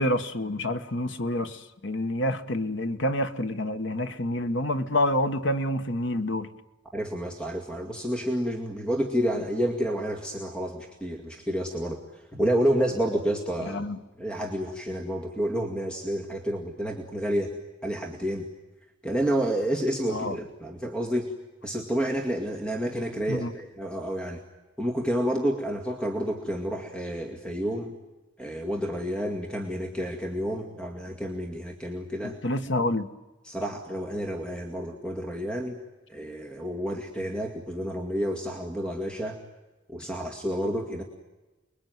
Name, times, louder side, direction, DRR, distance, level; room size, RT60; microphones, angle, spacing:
voice 1, 0.0-6.5 13.6-14.0 20.1-20.3 23.3-23.5 32.2-33.1, left 1 dB, 65° left, 1.4 m, -28 dB
voice 2, 6.9-13.8 14.2-17.5 17.8-18.5 19.0-21.3 21.6-24.4 24.8-28.0 28.4-32.4 32.8-32.9 33.4-35.8 36.1-39.4 39.9-41.0, equal, 5° left, 2.1 m, -29 dB
29.5 x 21.5 x 9.3 m
head